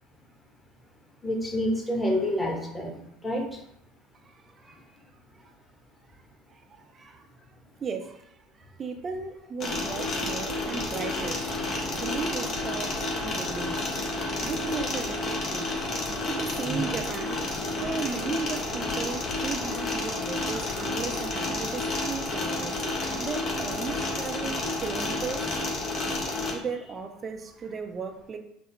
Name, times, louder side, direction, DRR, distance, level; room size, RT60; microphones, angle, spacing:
voice 1, 1.2-3.0 3.2-3.4 16.7-16.8 26.2-26.3, equal, 10° left, 1.1 m, -28 dB
voice 2, 4.2-4.8 5.3-5.5 6.5-7.2 7.8-13.9 14.4-17.5 17.8-25.5 26.5-28.4, right 5 dB, 35° right, 0.5 m, -36 dB
sound 1, 9.6-26.5, left 2 dB, 40° left, 1.0 m, -30 dB
5.5 x 2.1 x 3.2 m
hypercardioid pair, 70°, 0 cm